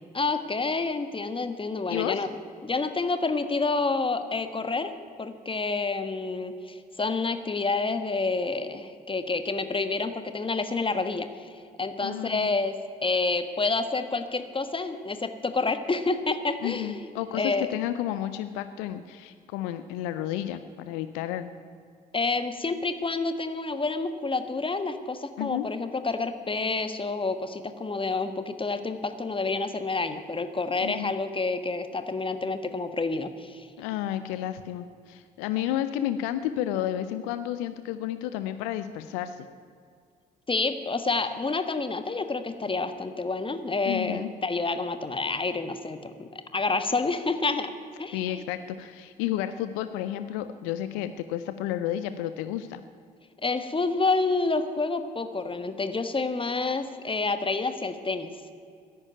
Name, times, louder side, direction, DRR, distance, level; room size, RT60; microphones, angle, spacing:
voice 1, 0.1-2.3 2.6-4.9 5.2-12.8 13.0-17.1 17.3-17.7 22.1-33.7 40.5-47.7 48.0-48.4 53.4-58.3, left 3 dB, 25° left, 10 dB, 1.5 m, -28 dB
voice 2, 1.9-2.3 12.0-12.5 16.6-21.5 25.4-25.7 30.8-31.2 33.8-39.5 43.9-44.3 48.1-52.8, left 12 dB, 75° left, 11 dB, 0.6 m, -31 dB
14.0 x 10.5 x 9.3 m, 2.3 s
figure-of-eight pair, 45°, 21 cm